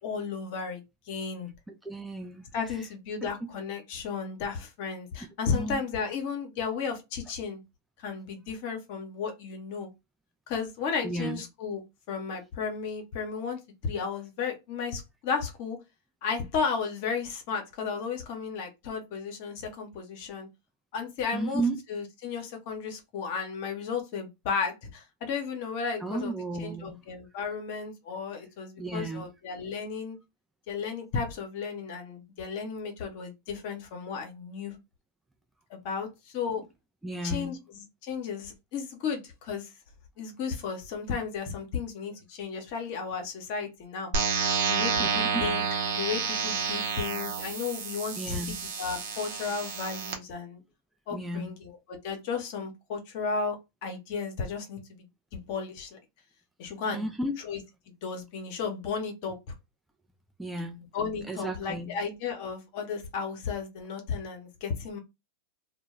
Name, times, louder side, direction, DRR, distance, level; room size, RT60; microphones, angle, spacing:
voice 1, 0.0-1.5 2.5-7.6 8.0-9.9 10.5-11.8 12.1-15.8 16.2-20.5 20.9-21.6 21.9-26.3 26.6-30.2 30.7-34.8 35.7-36.6 37.2-39.7 40.2-44.1 44.6-45.6 45.9-48.4 48.8-50.6 51.1-55.1 55.3-56.0 56.6-57.0 57.4-57.6 58.0-59.4 60.9-65.0, left 5 dB, 55° left, 0.8 m, -34 dB
voice 2, 1.8-2.5 3.2-3.3 5.5-5.8 11.0-11.4 21.3-21.8 26.0-27.0 28.8-29.3 37.0-37.6 45.0-45.4 48.2-48.6 51.1-51.5 56.9-57.4 60.4-60.8 61.3-62.0, right 2 dB, 5° right, 0.4 m, -33 dB
sound 1, 44.1-50.1, right 5 dB, 65° right, 0.7 m, -30 dB
2.2 x 2.1 x 3.0 m
hypercardioid pair, 95°, 0 cm